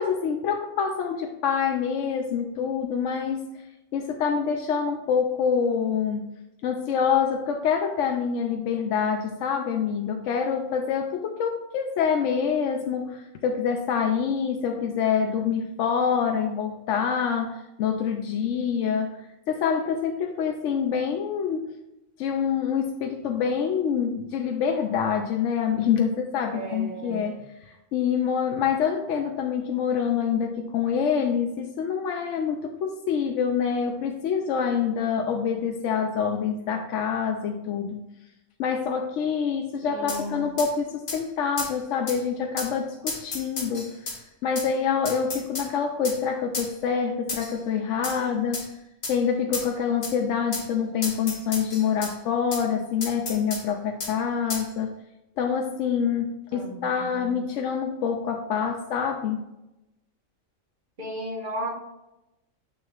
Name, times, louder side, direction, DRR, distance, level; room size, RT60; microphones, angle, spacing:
voice 1, 0.0-3.6 3.9-6.3 6.6-21.7 22.2-38.0 38.6-44.0 44.4-48.7 49.1-54.9 55.4-59.4, left 7 dB, 70° left, 3 dB, 0.9 m, -26 dB
voice 2, 26.5-27.3 39.8-40.4 56.5-57.4 61.0-61.7, right 1 dB, 40° right, 0 dB, 1.3 m, -35 dB
sound 1, 40.1-40.2 40.6-40.7 41.1-41.2 41.6-41.7 42.1-42.2 42.6-42.7 43.1-44.2 44.6-44.7 45.1-45.7 46.0-46.2 46.5-46.7 47.3-47.6 48.0-48.2 48.5-48.7 49.0-49.2 49.5-49.7 50.0-50.1 50.5-50.7 51.0-52.1 52.5-52.6 53.0-53.6 54.0-54.1 54.5-54.7, left 3 dB, 40° left, 1.2 m, -32 dB
6.9 x 6.2 x 2.4 m, 0.92 s
omnidirectional pair, 1.4 m